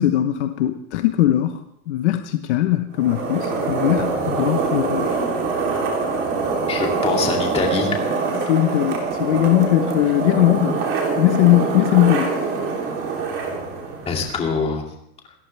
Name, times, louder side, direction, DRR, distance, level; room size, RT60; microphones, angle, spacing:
voice 1, 0.0-1.6 1.9-5.1 8.5-10.8 11.2-12.3, left 14 dB, 55° left, 8 dB, 1.0 m, -19 dB
sound 1, 2.9-14.5, right 4 dB, 25° right, 3.4 m, -24 dB
voice 2, 6.7-7.9 14.1-14.8, left 4 dB, 15° left, 1 dB, 2.6 m, -23 dB
28.0 x 14.0 x 3.4 m, 0.75 s
supercardioid pair, 165°, 42 cm